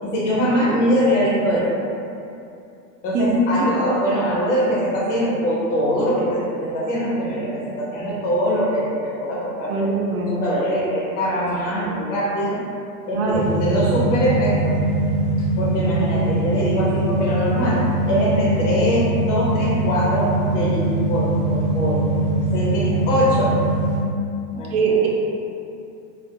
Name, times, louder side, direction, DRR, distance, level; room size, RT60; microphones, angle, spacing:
voice 1, 0.0-1.9 3.0-9.9 10.3-12.6 13.1-14.8 15.6-22.0 22.5-23.6 24.5-25.0, equal, 50° left, -6 dB, 0.7 m, -22 dB
voice 2, 9.7-10.3 13.1-13.5 24.7-25.1, right 5 dB, 60° right, -2 dB, 0.5 m, -21 dB
sound 1, 13.3-24.0, right 1 dB, 20° right, 1.2 m, -22 dB
2.3 x 2.0 x 2.7 m, 2.6 s
supercardioid pair, 160°, 48 cm